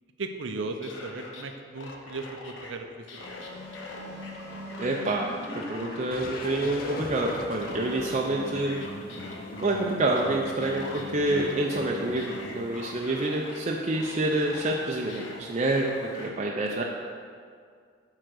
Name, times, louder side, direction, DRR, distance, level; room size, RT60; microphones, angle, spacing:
voice 1, 0.2-3.3 9.1-9.4 16.8-16.9, right 3 dB, 80° right, 6 dB, 0.7 m, -37 dB
sound 1, 0.6-1.4 1.8-2.7 3.1-5.2 5.4-8.2 8.5-13.6 13.9-16.3, left 2 dB, 85° left, 1.0 m, -43 dB
sound 2, 3.2-16.3, equal, 15° left, 1.7 m, -44 dB
voice 2, 4.8-8.8 9.6-16.8, right 2 dB, 35° right, -1 dB, 0.5 m, -27 dB
sound 3, 6.1-12.6, left 2 dB, 50° left, 0.6 m, -41 dB
9.2 x 3.8 x 6.2 m, 2.1 s
head